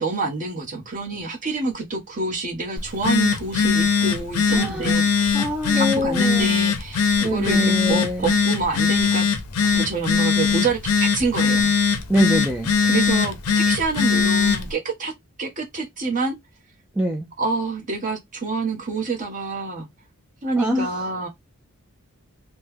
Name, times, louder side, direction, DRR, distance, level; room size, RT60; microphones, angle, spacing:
voice 1, 0.0-5.3 5.7-9.2 9.7-11.7 12.8-15.1 15.4-16.3 17.4-19.9 20.4-21.3, right 3 dB, 35° right, 1.0 m, -27 dB
Telephone, 2.8-14.7, left 5 dB, 90° left, 0.7 m, -21 dB
voice 2, 4.5-5.1 5.3-6.5 7.2-8.4 12.1-12.7 17.0-17.3 20.6-20.9, equal, 5° right, 0.3 m, -24 dB
3.1 x 2.2 x 3.4 m
head